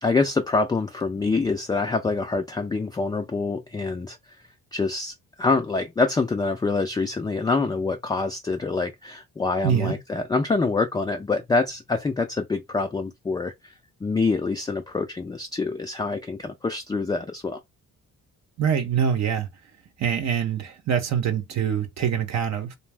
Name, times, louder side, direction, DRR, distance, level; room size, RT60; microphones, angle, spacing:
voice 1, 0.0-4.2 4.7-13.7 14.0-17.6, left 3 dB, 15° left, 0.3 m, -26 dB
voice 2, 9.6-10.0 18.6-19.5 20.0-22.8, right 8 dB, 60° right, 0.7 m, -24 dB
2.5 x 2.0 x 3.3 m
cardioid pair, 90°, 30 cm